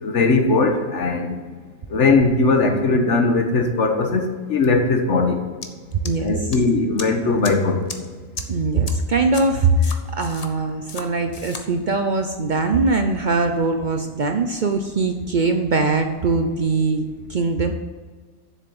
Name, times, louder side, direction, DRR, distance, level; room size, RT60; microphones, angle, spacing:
voice 1, 0.0-1.3 1.9-5.4 6.2-7.8, left 3 dB, 70° left, 4 dB, 1.5 m, -19 dB
sound 1, 5.6-5.7 6.1-6.6 7.0-7.1 7.4-7.5 7.9-8.0 8.4-8.5 8.9-9.0 9.3-9.4 9.8-10.5 10.9-11.0 11.3-11.6, left 4 dB, 35° left, 0.8 m, -33 dB
voice 2, 6.0-6.4 8.5-17.7, right 3 dB, 50° right, 6 dB, 0.7 m, -21 dB
7.5 x 6.7 x 7.0 m, 1.5 s
omnidirectional pair, 1.3 m